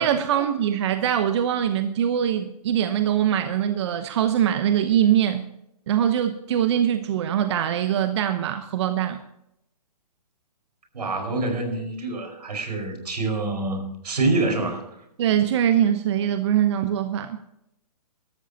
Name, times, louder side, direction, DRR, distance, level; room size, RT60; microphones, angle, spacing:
voice 1, 0.0-5.4 5.9-9.2 15.2-17.4, right 10 dB, 45° right, 9 dB, 0.9 m, -22 dB
voice 2, 10.9-14.9, right 2 dB, 80° right, 4 dB, 5.0 m, -26 dB
16.0 x 13.0 x 2.8 m, 0.78 s
hypercardioid pair, 145°, 20 cm